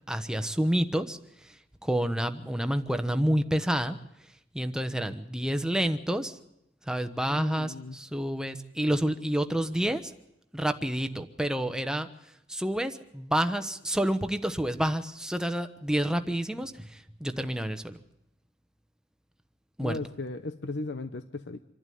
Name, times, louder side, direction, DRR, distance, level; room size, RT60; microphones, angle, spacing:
voice 1, 0.1-4.0 4.5-6.4 6.9-10.1 10.5-12.1 12.5-18.0 19.8-19.9, equal, 5° right, 8 dB, 1.0 m, -29 dB
voice 2, 7.3-8.0 19.8-21.6, left 2 dB, 70° left, 10 dB, 0.8 m, -36 dB
26.5 x 12.0 x 9.4 m, 0.82 s
head